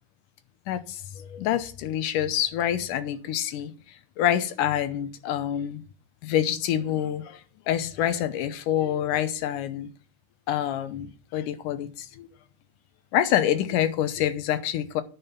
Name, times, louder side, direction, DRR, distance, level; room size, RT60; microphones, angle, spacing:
voice 1, 0.7-3.7 4.2-5.8 6.2-7.4 7.7-9.9 10.5-12.3 13.1-15.0, left 11 dB, 80° left, 2.4 m, -26 dB
10.0 x 5.7 x 6.9 m
omnidirectional pair, 3.7 m